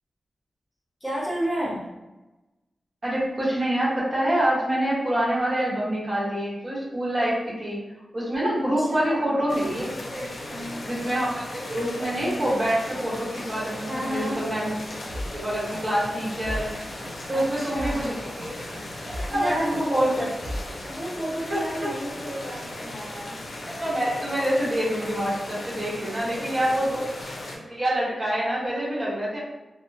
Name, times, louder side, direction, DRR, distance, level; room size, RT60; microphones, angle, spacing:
voice 1, 1.0-1.8 6.8-6.9 8.8-9.6 10.5-10.8 13.8-14.4 17.3-18.3 19.3-20.2 20.8-23.4 26.1-26.7, equal, 10° left, -7 dB, 0.9 m, -32 dB
voice 2, 3.0-7.8 8.1-10.3 10.8-14.7 15.3-16.7 17.3-18.1 18.4-18.5 19.1-20.3 21.5-21.6 23.6-27.1 27.5-29.4, right 1 dB, 40° right, -8 dB, 1.1 m, -26 dB
sound 1, 9.5-27.6, left 1 dB, 60° left, 0.5 m, -37 dB
sound 2, 14.7-20.7, equal, 70° right, 0.4 m, -38 dB
2.6 x 2.1 x 2.7 m, 1.0 s
wide cardioid pair, 85°, 0 cm